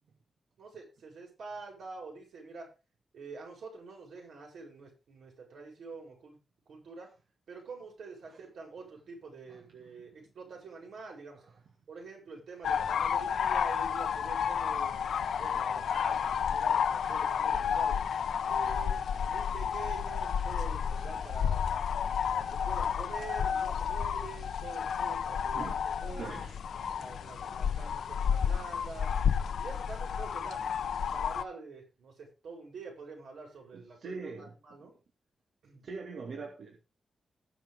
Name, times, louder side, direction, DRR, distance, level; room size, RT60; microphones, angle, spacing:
voice 1, 0.6-2.7 3.1-6.4 6.7-7.1 7.5-11.4 11.9-18.0 18.5-21.7 22.3-26.5 26.8-29.1 29.6-30.7 31.1-34.9 35.6-35.9, right 4 dB, 80° right, 0 dB, 7.5 m, -46 dB
sound 1, 12.6-31.4, left 7 dB, 85° left, 0.9 m, -31 dB
voice 2, 25.5-26.6 33.7-34.5 35.8-36.8, right 4 dB, 60° right, 1 dB, 2.7 m, -42 dB
20.0 x 6.9 x 3.7 m, 0.30 s
wide cardioid pair, 175°, 0 cm